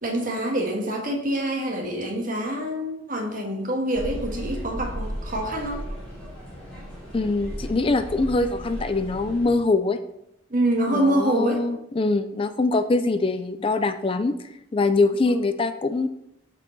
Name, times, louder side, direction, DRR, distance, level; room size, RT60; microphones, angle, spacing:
voice 1, 0.0-5.8 10.5-11.6, right 1 dB, 45° right, 1 dB, 1.8 m, -26 dB
sound 1, 3.9-9.5, equal, 5° left, 3.3 m, -35 dB
voice 2, 7.1-10.0 10.9-16.1, left 3 dB, 30° left, 10 dB, 0.4 m, -23 dB
14.0 x 4.7 x 4.0 m, 0.83 s
head